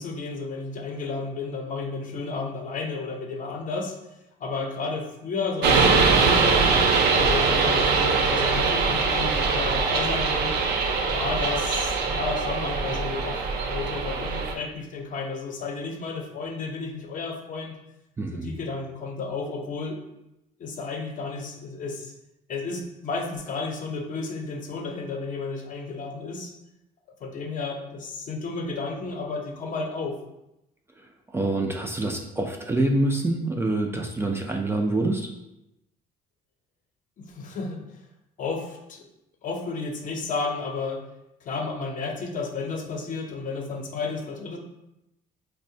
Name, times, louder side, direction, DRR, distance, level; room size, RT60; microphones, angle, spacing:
voice 1, 0.0-4.0 4.4-6.7 7.1-10.5 11.1-17.8 18.3-20.0 20.6-22.1 22.5-26.5 27.2-30.2 37.2-37.8 38.4-39.0 39.4-41.0 41.4-44.6, left 4 dB, 50° left, 3 dB, 0.6 m, -32 dB
sound 1, 5.6-14.5, right 4 dB, 75° right, 0.5 m, -22 dB
voice 2, 18.2-18.5 31.0-31.1 31.3-35.3, right 2 dB, 15° right, 2 dB, 0.3 m, -26 dB
4.2 x 2.1 x 2.7 m, 0.88 s
cardioid pair, 110°, 17 cm